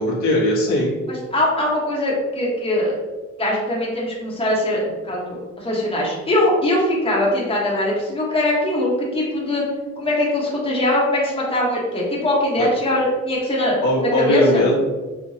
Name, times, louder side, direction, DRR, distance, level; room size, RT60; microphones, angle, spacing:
voice 1, 0.0-1.0 12.6-12.7 13.8-14.8, left 1 dB, 70° left, -5 dB, 1.4 m, -19 dB
voice 2, 1.1-2.9 3.4-9.6 10.0-13.8 14.1-14.6, left 1 dB, 20° left, -5 dB, 1.2 m, -21 dB
4.8 x 2.5 x 2.8 m, 1.3 s
cardioid pair, 90°, 30 cm